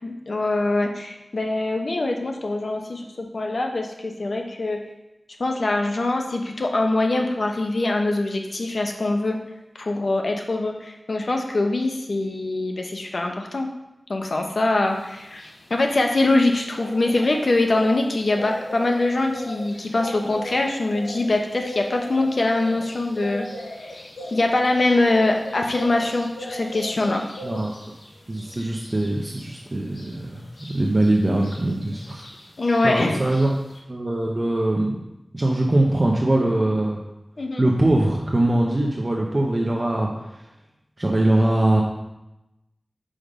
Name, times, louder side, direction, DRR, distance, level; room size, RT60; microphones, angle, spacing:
voice 1, 0.0-4.8 5.4-9.4 9.8-13.7 14.1-27.2 32.6-33.2 37.4-37.7, left 2 dB, 65° left, 3 dB, 0.9 m, -23 dB
sound 1, 15.0-33.8, left 1 dB, 85° left, 1.2 m, -39 dB
voice 2, 28.3-30.5 30.7-32.2 32.8-33.6 33.9-35.0 35.3-37.0 37.6-40.1 41.0-41.8, right 1 dB, 35° right, -1 dB, 0.8 m, -22 dB
5.3 x 5.1 x 5.1 m, 0.94 s
wide cardioid pair, 65°, 0 cm